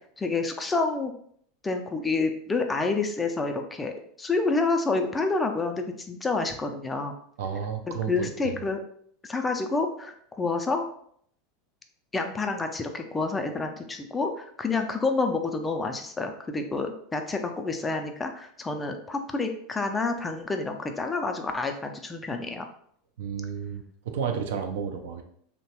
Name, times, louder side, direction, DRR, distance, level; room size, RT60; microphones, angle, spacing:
voice 1, 0.2-1.1 1.6-7.1 7.9-8.8 9.2-10.9 12.1-22.6, left 3 dB, 15° left, 5 dB, 0.4 m, -28 dB
voice 2, 7.4-8.6 23.2-25.2, right 7 dB, 65° right, 5 dB, 0.4 m, -32 dB
2.9 x 2.1 x 2.8 m, 0.64 s
figure-of-eight pair, 85°, 0 cm